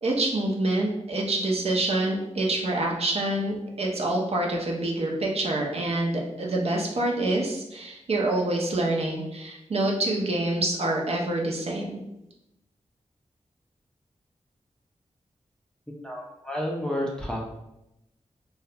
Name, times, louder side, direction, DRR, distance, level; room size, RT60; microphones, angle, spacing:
voice 1, 0.0-12.0, right 2 dB, 55° right, -1 dB, 0.5 m, -26 dB
voice 2, 16.0-17.4, equal, 5° left, -3 dB, 0.5 m, -30 dB
2.3 x 2.1 x 2.7 m, 0.88 s
wide cardioid pair, 90°, 12 cm